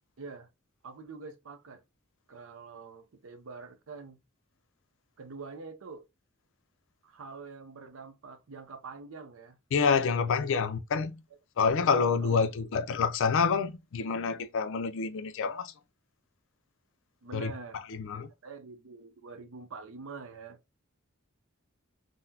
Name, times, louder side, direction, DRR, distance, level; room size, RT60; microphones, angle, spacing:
voice 1, 0.2-0.5 0.8-1.8 2.3-4.2 5.2-6.1 7.0-9.6 10.1-10.5 12.2-12.5 17.2-17.8 18.1-20.6, right 4 dB, 70° right, 0.6 m, -45 dB
voice 2, 9.7-11.2 11.6-15.7 17.3-17.5 18.0-18.3, left 5 dB, 65° left, 0.4 m, -27 dB
3.9 x 2.1 x 2.7 m
head